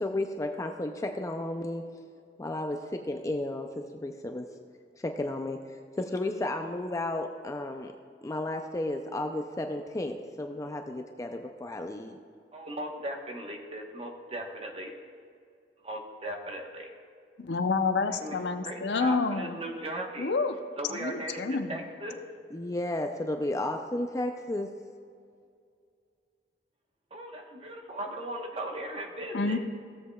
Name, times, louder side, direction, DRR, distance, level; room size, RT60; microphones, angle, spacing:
voice 1, 0.0-1.8 2.4-4.5 5.0-7.9 8.2-12.2 22.5-24.7, left 1 dB, 20° left, 5 dB, 0.4 m, -33 dB
voice 2, 12.5-14.9 15.8-16.9 18.1-20.3 20.8-22.2 27.1-29.6, right 1 dB, 35° right, 2 dB, 1.1 m, -38 dB
voice 3, 17.4-19.6 20.2-20.6 21.0-21.8 29.3-29.6, left 4 dB, 85° left, 8 dB, 0.6 m, -28 dB
16.5 x 7.5 x 2.3 m, 2.3 s
head